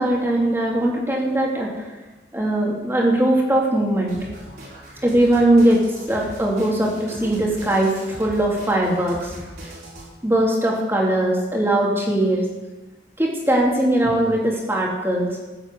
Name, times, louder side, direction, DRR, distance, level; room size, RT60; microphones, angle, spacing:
voice 1, 0.0-1.9 2.3-4.2 5.0-9.3 10.2-12.4 13.2-15.3, right 1 dB, 15° right, -2 dB, 2.9 m, -20 dB
sound 1, 4.1-10.1, equal, 60° right, 4.6 m, -40 dB
15.5 x 8.0 x 8.0 m, 1.2 s
head